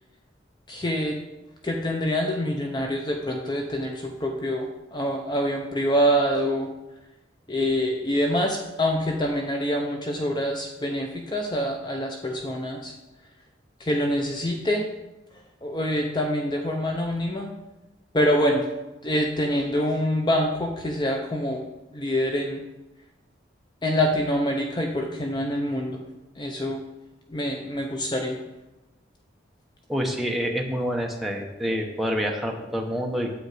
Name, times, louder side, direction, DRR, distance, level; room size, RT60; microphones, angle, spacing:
voice 1, 0.7-1.2 1.6-6.7 7.5-12.9 13.8-14.9 15.6-17.5 18.1-18.6 19.0-21.6 21.9-22.6 23.8-26.0 26.4-26.8 27.3-28.4, equal, 25° left, 2 dB, 0.7 m, -25 dB
voice 2, 29.9-33.3, equal, ahead, 1 dB, 1.0 m, -27 dB
9.2 x 8.0 x 4.9 m, 1.0 s
head